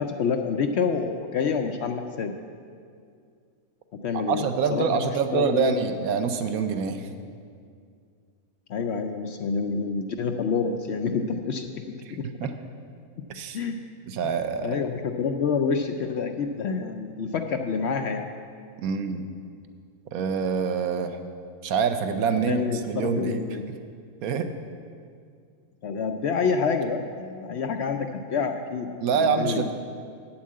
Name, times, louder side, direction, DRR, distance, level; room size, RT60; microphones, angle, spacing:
voice 1, 0.0-2.3 3.9-5.8 8.7-11.7 12.1-12.3 13.2-13.3 13.5-13.8 14.6-18.3 22.5-23.7 25.8-29.7, left 5 dB, 65° left, 5 dB, 0.7 m, -28 dB
voice 2, 4.1-7.1 12.1-12.6 13.3-13.6 14.1-14.7 18.8-19.2 20.1-21.2 21.6-23.4 23.7-23.8 24.2-24.5 29.0-29.7, right 6 dB, 85° right, 8 dB, 1.1 m, -26 dB
9.4 x 7.3 x 7.5 m, 2.2 s
omnidirectional pair, 1.5 m